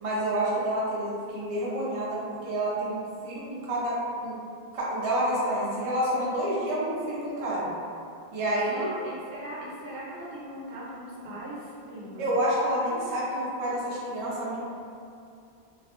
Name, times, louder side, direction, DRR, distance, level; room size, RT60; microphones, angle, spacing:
voice 1, 0.0-3.9 4.2-4.4 4.7-7.7 8.3-8.9 12.2-14.6, right 1 dB, 45° right, -6 dB, 0.5 m, -28 dB
voice 2, 8.7-12.3, right 1 dB, 70° right, -6 dB, 0.8 m, -39 dB
2.3 x 2.0 x 2.8 m, 2.5 s
omnidirectional pair, 1.0 m